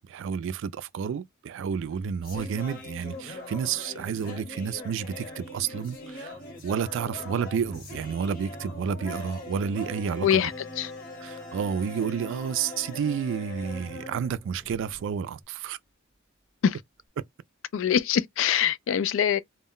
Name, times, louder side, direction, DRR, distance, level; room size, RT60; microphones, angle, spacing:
voice 1, 0.1-6.3 6.6-10.5 11.2-15.8, right 7 dB, 60° right, 0.3 m, -30 dB
sound 1, 1.7-15.1, left 2 dB, 45° left, 0.9 m, -42 dB
sound 2, 6.3-15.4, right 1 dB, 15° right, 0.7 m, -51 dB
voice 2, 10.2-10.9 16.6-16.8 17.7-19.4, left 8 dB, 65° left, 0.3 m, -24 dB
2.1 x 2.1 x 3.6 m
head